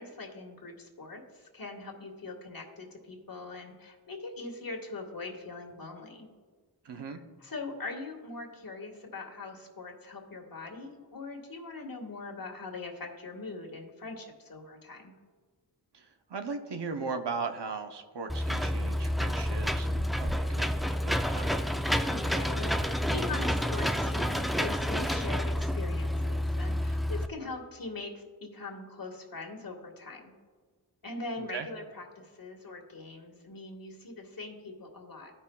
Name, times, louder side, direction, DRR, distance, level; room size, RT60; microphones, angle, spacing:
voice 1, 0.0-6.3 7.4-15.1 22.1-30.3 31.0-35.3, left 3 dB, 55° left, 2 dB, 1.6 m, -42 dB
voice 2, 6.8-7.2 15.9-21.5 31.4-31.7, right 4 dB, 75° right, 7 dB, 0.8 m, -38 dB
Engine / Mechanisms, 18.3-27.3, equal, ahead, 0.4 m, -29 dB
14.5 x 5.6 x 2.3 m, 1.5 s
cardioid pair, 40°, 42 cm